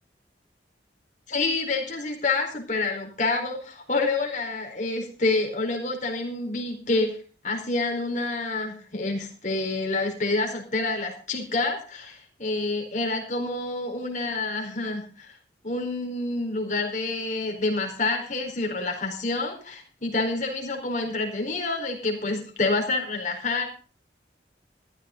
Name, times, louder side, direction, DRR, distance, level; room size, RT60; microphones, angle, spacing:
voice 1, 1.3-7.2 7.4-15.3 15.6-23.6, left 3 dB, 45° left, 2 dB, 4.4 m, -28 dB
14.5 x 13.5 x 3.9 m, 0.38 s
head